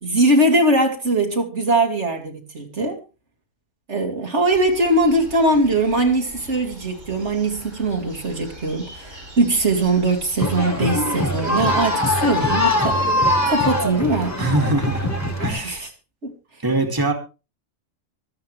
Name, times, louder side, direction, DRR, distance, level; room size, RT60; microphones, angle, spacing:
voice 1, 0.0-3.0 3.9-13.0 13.5-14.4 15.5-15.9 16.2-16.3, right 2 dB, 65° right, 2.9 m, -21 dB
sound 1, 4.5-15.8, right 1 dB, 90° right, 6.5 m, -42 dB
sound 2, 10.4-15.5, left 1 dB, 15° left, 2.0 m, -22 dB
voice 2, 14.4-15.1 15.4-15.8 16.6-17.1, right 2 dB, 15° right, 2.3 m, -22 dB
25.0 x 8.3 x 3.3 m
omnidirectional pair, 1.3 m